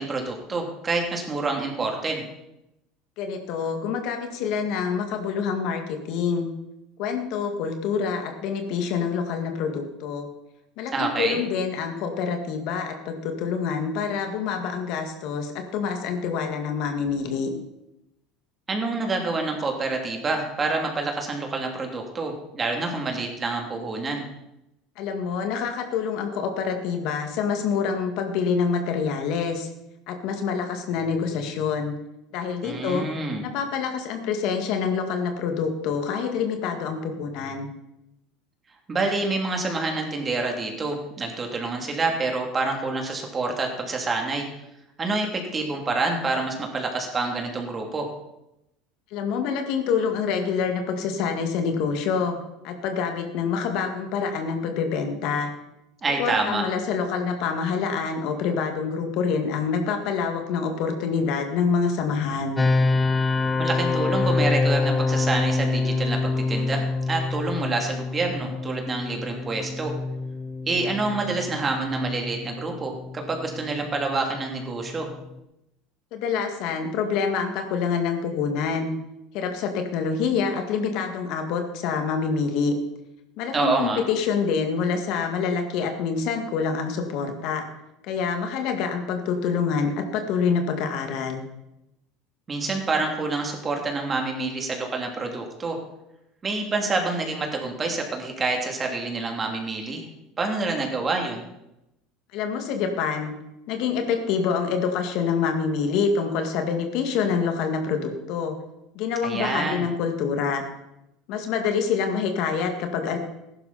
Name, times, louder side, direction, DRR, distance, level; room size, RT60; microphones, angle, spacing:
voice 1, 0.0-2.3 10.9-11.4 18.7-24.2 32.6-33.5 38.9-44.5 45.0-48.1 56.0-56.6 63.6-69.9 70.7-75.1 83.5-84.0 92.5-95.8 96.4-100.1 100.4-101.4 109.2-109.9, right 3 dB, 25° right, 2 dB, 2.8 m, -27 dB
voice 2, 3.2-6.5 7.0-10.3 10.8-17.5 25.0-29.7 30.1-31.9 32.3-33.0 33.5-37.7 49.1-52.4 52.6-55.5 56.2-62.6 76.1-78.9 79.3-82.7 83.4-87.7 88.0-91.4 102.3-103.3 103.7-108.6 109.0-110.6 111.3-113.2, left 6 dB, 65° left, 5 dB, 2.0 m, -26 dB
sound 1, 62.6-75.4, left 3 dB, 15° left, 0.8 m, -26 dB
14.5 x 11.0 x 4.2 m, 0.88 s
supercardioid pair, 110°, 0 cm